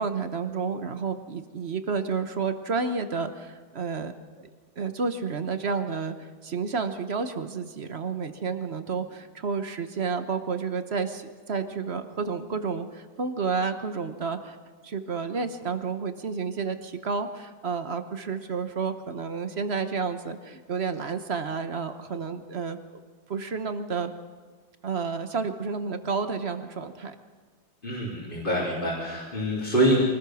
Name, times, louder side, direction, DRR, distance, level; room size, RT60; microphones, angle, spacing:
voice 1, 0.0-4.5 4.8-14.6 14.8-22.8 23.3-24.1 24.8-27.1, right 5 dB, 40° right, 9 dB, 1.1 m, -30 dB
voice 2, 27.8-30.0, right 1 dB, 25° left, -6 dB, 3.9 m, -25 dB
24.5 x 19.5 x 6.3 m, 1.4 s
omnidirectional pair, 2.1 m